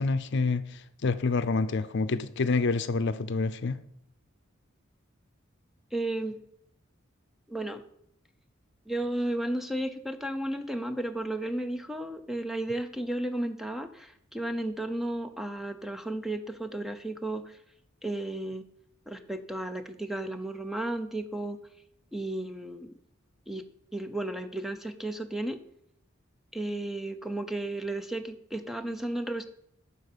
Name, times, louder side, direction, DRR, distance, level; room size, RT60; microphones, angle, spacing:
voice 1, 0.0-3.8, left 3 dB, 60° left, 0.5 m, -27 dB
voice 2, 5.9-6.4 7.5-7.8 8.9-17.6 18.0-18.6 19.1-21.6 22.1-22.9 23.5-25.6 26.5-29.4, right 1 dB, ahead, 0.5 m, -33 dB
12.0 x 4.4 x 6.7 m
head